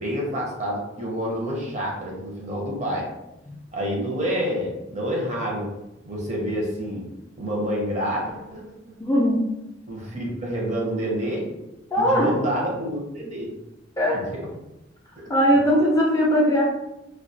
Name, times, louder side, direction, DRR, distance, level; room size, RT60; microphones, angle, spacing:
voice 1, 0.0-3.1 3.7-5.7 6.1-7.1 7.3-8.6 8.9-9.0 9.9-11.5 12.0-13.5 14.1-14.4, equal, 35° right, -2 dB, 0.6 m, -28 dB
voice 2, 9.0-9.4 11.9-12.3 14.0-14.2 15.3-16.7, equal, 15° left, -3 dB, 0.3 m, -19 dB
2.2 x 2.2 x 2.6 m, 0.91 s
head